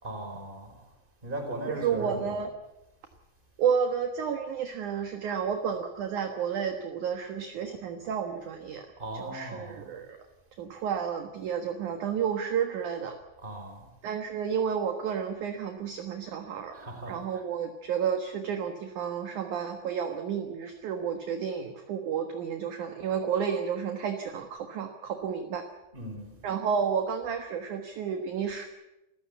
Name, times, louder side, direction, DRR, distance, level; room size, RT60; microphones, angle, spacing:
voice 1, 0.0-0.8 1.2-2.4 9.0-9.9 13.4-13.9 16.7-17.4 25.9-26.4, right 1 dB, 10° right, 4 dB, 4.5 m, -38 dB
voice 2, 1.7-2.5 3.6-8.9 9.1-10.2 10.6-13.2 14.0-16.7 17.1-25.6 26.4-28.7, right 7 dB, 60° right, 5 dB, 2.1 m, -31 dB
27.5 x 15.0 x 8.2 m, 0.95 s
omnidirectional pair, 5.3 m